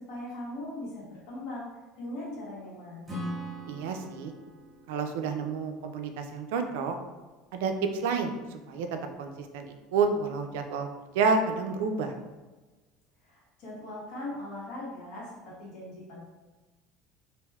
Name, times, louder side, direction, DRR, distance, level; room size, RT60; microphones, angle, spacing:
voice 1, 0.1-1.7 2.0-3.1 13.2-16.2, left 1 dB, 55° left, -6 dB, 1.2 m, -40 dB
Acoustic guitar / Strum, 3.1-6.6, right 1 dB, 15° right, 0.9 m, -41 dB
voice 2, 3.7-4.3 4.9-6.9 7.5-10.9 11.1-12.1, right 4 dB, 90° right, 5 dB, 0.3 m, -29 dB
3.3 x 2.5 x 2.3 m, 1.2 s
cardioid pair, 145°, 0 cm